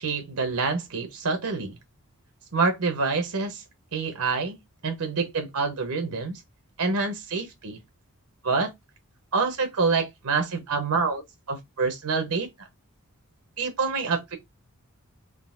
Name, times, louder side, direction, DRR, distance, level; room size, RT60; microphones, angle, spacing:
voice 1, 0.0-1.8 2.5-3.6 3.9-6.4 6.8-7.8 8.4-8.7 9.3-11.2 11.5-12.5 13.6-14.4, right 4 dB, 80° right, 0.9 m, -27 dB
3.8 x 2.3 x 2.5 m
head